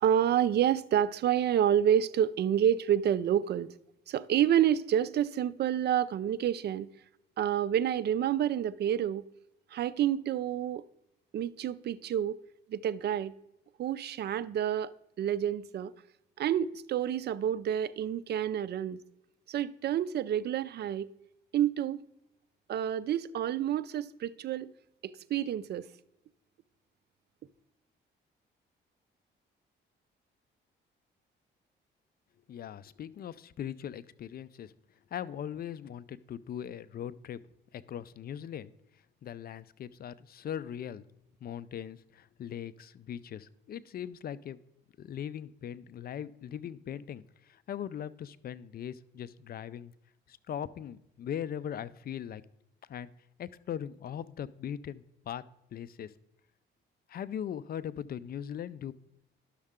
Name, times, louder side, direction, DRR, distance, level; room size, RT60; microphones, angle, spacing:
voice 1, 0.0-3.7 4.1-6.9 7.4-9.2 9.7-10.8 11.3-12.4 12.7-13.3 13.8-15.9 16.4-19.0 19.5-21.1 21.5-22.0 22.7-24.7 25.0-25.9, right 10 dB, 55° right, 0.5 m, -28 dB
voice 2, 32.5-34.7 35.1-37.4 37.7-41.1 41.4-44.6 45.0-49.9 50.3-52.4 52.9-53.1 53.4-55.4 55.7-56.1 57.1-58.9, left 9 dB, 50° left, 0.4 m, -40 dB
11.5 x 6.5 x 3.6 m
cardioid pair, 90°, 20 cm